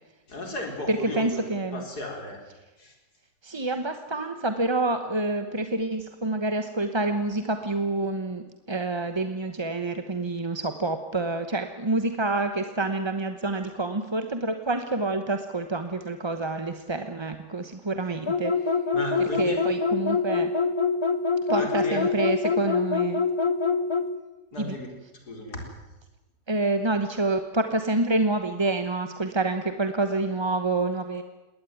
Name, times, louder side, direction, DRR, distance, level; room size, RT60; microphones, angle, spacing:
voice 1, 0.3-1.4 1.7-2.4 2.8-2.9 18.9-19.6 21.5-22.0 24.5-24.9 25.3-25.6, left 2 dB, 70° left, 2 dB, 4.9 m, -34 dB
voice 2, 0.9-1.8 3.4-18.5 19.2-20.5 21.5-23.2 24.6-24.8 26.5-31.2, right 2 dB, 20° right, 8 dB, 0.9 m, -27 dB
sound 1, 18.3-24.1, left 5 dB, 20° left, 0.9 m, -24 dB
21.0 x 18.0 x 9.2 m, 1.1 s
omnidirectional pair, 1.7 m